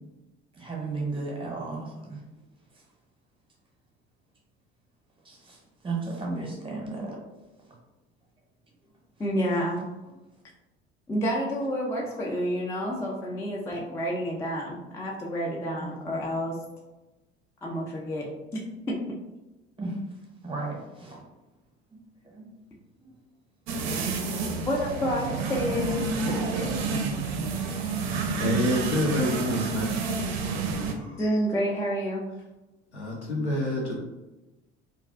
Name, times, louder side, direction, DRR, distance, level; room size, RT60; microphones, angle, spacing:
voice 1, 0.5-2.2 2.7-2.8 5.2-7.2 15.8-16.4 19.8-20.0 20.4-21.2 22.2-22.5 23.0-23.1 30.9-31.2, right 3 dB, 15° right, -2 dB, 0.8 m, -35 dB
voice 2, 9.2-9.8 11.1-16.6 17.6-18.3 18.5-18.6 18.9-19.0 24.7-27.0 31.2-32.2, equal, 10° left, -2 dB, 0.3 m, -29 dB
sound 1, 23.7-30.9, right 4 dB, 60° right, 0.5 m, -29 dB
voice 3, 28.4-29.9 32.9-33.9, left 1 dB, 90° left, -3 dB, 0.6 m, -27 dB
2.4 x 2.3 x 2.3 m, 1.0 s
figure-of-eight pair, 65°, 33 cm